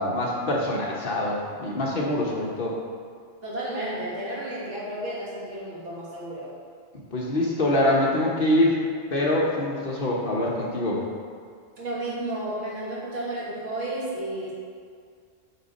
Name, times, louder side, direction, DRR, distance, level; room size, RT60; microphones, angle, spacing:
voice 1, 0.0-2.8 7.1-8.8 9.1-11.0, left 1 dB, 50° left, -3 dB, 1.0 m, -24 dB
voice 2, 3.4-6.5 11.8-14.5, right 1 dB, 70° right, -7 dB, 2.1 m, -32 dB
8.7 x 3.7 x 4.0 m, 2.1 s
omnidirectional pair, 1.3 m